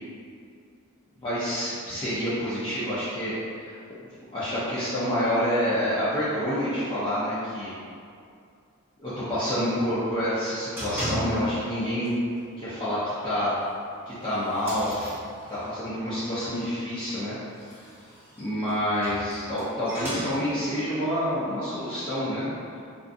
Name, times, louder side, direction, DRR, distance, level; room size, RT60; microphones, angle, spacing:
voice 1, 1.2-3.8 4.3-7.7 9.0-12.1 12.6-13.5 14.1-14.9 15.5-17.3 18.4-22.5, equal, 20° left, -13 dB, 0.4 m, -28 dB
sound 1, 10.7-11.8 12.0-12.4 12.7-12.8 13.2-13.3 14.0-15.9 17.4-20.8, equal, 10° right, 0.8 m, -36 dB
2.4 x 2.4 x 2.5 m, 2.4 s
head